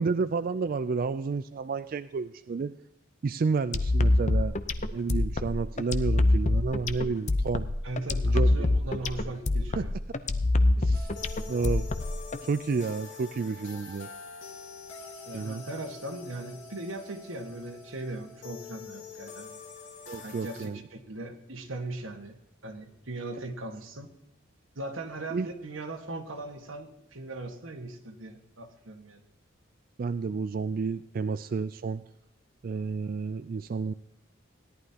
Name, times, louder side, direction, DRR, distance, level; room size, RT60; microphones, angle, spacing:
voice 1, 0.0-2.7 3.2-4.6 4.9-7.7 8.2-8.7 9.8-9.9 10.8-11.1 11.5-11.9 12.4-14.1 15.3-15.6 20.1-20.8 25.3-25.5 30.0-32.0 32.6-33.9, right 4 dB, 45° right, 11 dB, 0.3 m, -30 dB
sound 1, 3.7-12.4, left 2 dB, 35° left, 0.6 m, -25 dB
voice 2, 7.8-9.9 15.3-19.6 20.2-22.4 22.6-24.1 24.7-29.2, right 2 dB, 85° right, 5 dB, 1.5 m, -39 dB
sound 2, 10.9-20.7, left 5 dB, 80° left, 2.4 m, -45 dB
17.0 x 11.0 x 2.9 m, 0.88 s
head